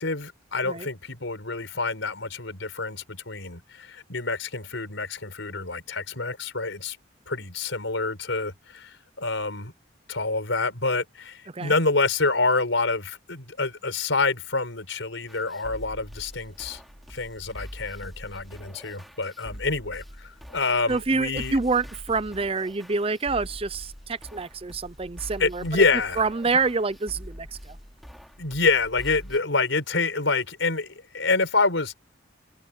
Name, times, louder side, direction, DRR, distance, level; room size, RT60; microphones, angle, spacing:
voice 1, 0.0-7.0 7.3-9.7 10.1-16.8 17.1-21.6 25.4-26.2 28.4-31.9, left 3 dB, 85° left, 4.6 m, -27 dB
sound 1, 15.3-29.4, equal, ahead, 3.0 m, -43 dB
voice 2, 20.9-25.8 26.2-27.8, right 4 dB, 30° right, 0.6 m, -27 dB
head